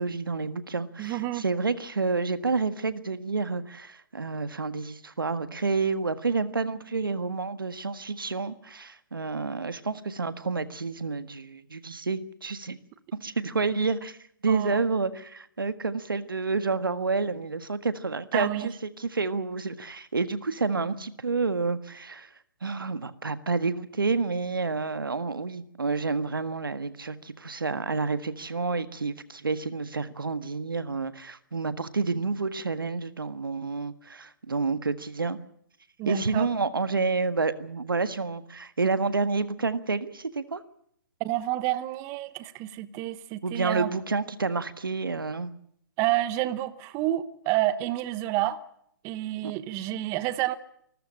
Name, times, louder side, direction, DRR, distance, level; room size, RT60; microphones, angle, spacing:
voice 1, 0.0-12.8 13.1-14.2 14.4-22.3 22.6-35.4 36.0-40.6 43.4-45.5 49.4-49.5, right 4 dB, 85° right, 13 dB, 1.6 m, -29 dB
voice 2, 1.0-1.4 14.5-14.8 18.3-18.7 36.0-36.5 41.2-43.9 46.0-48.6 49.0-50.5, right 15 dB, 25° right, 15 dB, 1.1 m, -29 dB
26.5 x 13.5 x 8.7 m, 0.68 s
hypercardioid pair, 135°, 11 cm